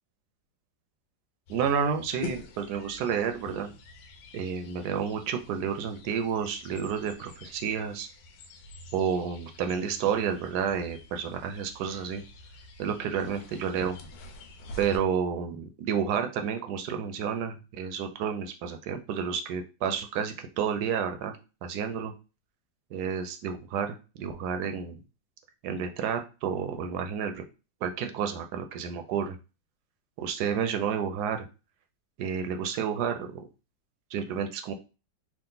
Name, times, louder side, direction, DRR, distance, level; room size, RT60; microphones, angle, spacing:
sound 1, 1.5-15.0, left 3 dB, 90° left, 1.4 m, -46 dB
voice 1, 1.5-3.7 4.3-8.1 8.9-12.2 12.8-14.0 14.8-22.1 22.9-25.0 25.6-27.4 27.8-29.4 30.2-31.4 32.2-33.4 34.1-34.7, right 7 dB, 70° right, 6 dB, 1.0 m, -30 dB
3.7 x 2.4 x 3.8 m, 0.31 s
omnidirectional pair, 2.0 m